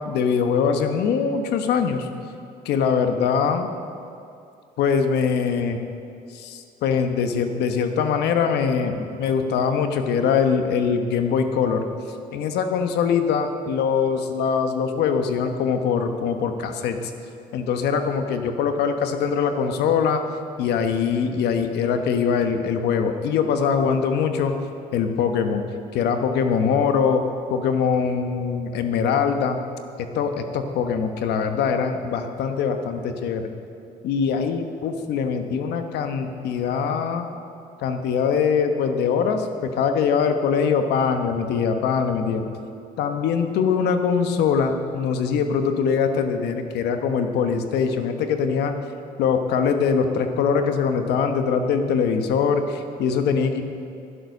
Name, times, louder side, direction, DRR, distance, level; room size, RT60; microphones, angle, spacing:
voice 1, 0.0-2.1 2.6-3.7 4.8-5.8 6.3-11.8 12.3-17.1 17.5-20.2 20.6-24.5 24.9-25.6 25.9-27.2 27.5-29.6 30.0-33.5 34.0-37.3 37.8-42.5 43.0-48.7 49.2-53.6, left 6 dB, 80° left, 7 dB, 1.1 m, -22 dB
11.0 x 11.0 x 6.6 m, 2.6 s
cardioid pair, 110°, 17 cm